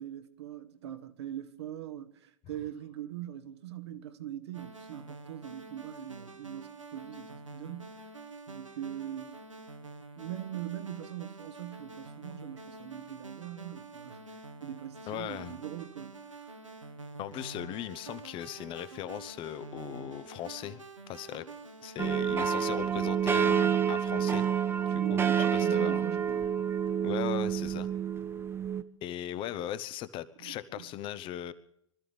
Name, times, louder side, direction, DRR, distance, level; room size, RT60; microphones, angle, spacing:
voice 1, 0.0-8.0 8.5-9.3 10.2-14.2 14.6-16.1 24.9-26.4 30.4-30.9, right 11 dB, 60° right, 1.3 m, -41 dB
sound 1, 4.5-22.2, right 3 dB, 85° right, 1.7 m, -47 dB
voice 2, 15.1-15.6 17.2-20.8 21.1-21.5 21.8-24.5 24.9-25.2 25.5-26.1 27.0-27.9 29.0-31.5, left 12 dB, 35° left, 0.9 m, -38 dB
sound 2, 22.0-28.8, right 8 dB, 15° right, 0.7 m, -28 dB
25.0 x 13.5 x 3.5 m
figure-of-eight pair, 90°, 16 cm